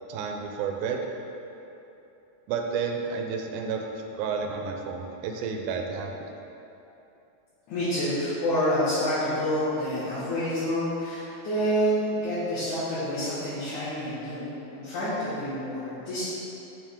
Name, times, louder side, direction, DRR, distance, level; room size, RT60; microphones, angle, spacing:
voice 1, 0.1-1.0 2.5-6.3, right 5 dB, 90° right, 2 dB, 2.1 m, -31 dB
voice 2, 7.7-16.2, equal, 80° left, -13 dB, 2.9 m, -28 dB
6.8 x 5.7 x 3.6 m, 2.9 s
omnidirectional pair, 3.4 m